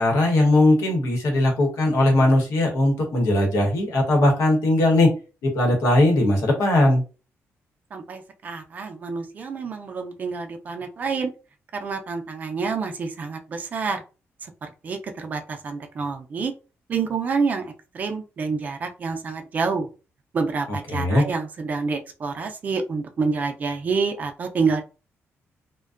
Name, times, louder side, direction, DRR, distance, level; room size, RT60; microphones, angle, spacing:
voice 1, 0.0-5.1 5.4-7.0 20.7-21.3, left 1 dB, 85° left, 1 dB, 1.0 m, -19 dB
voice 2, 7.9-11.3 11.8-14.0 14.8-16.5 16.9-19.9 20.3-24.8, right 4 dB, 35° right, 5 dB, 0.4 m, -28 dB
2.5 x 2.1 x 2.4 m, 0.34 s
wide cardioid pair, 180°, 5 cm